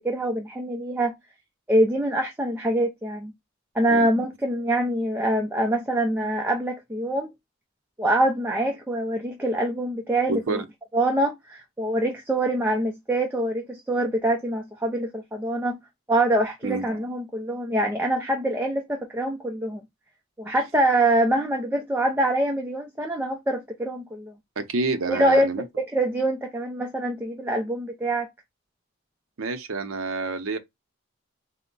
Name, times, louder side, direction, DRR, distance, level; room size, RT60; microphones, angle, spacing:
voice 1, 0.0-1.1 1.7-3.3 3.7-7.3 8.0-10.6 10.9-15.8 16.1-19.8 20.4-24.3 25.1-25.5 25.8-28.3, right 1 dB, 10° right, 0.5 m, -24 dB
voice 2, 10.3-10.6 16.6-16.8 24.6-25.6 29.4-30.6, right 3 dB, 75° right, 0.7 m, -28 dB
4.4 x 2.1 x 3.9 m
head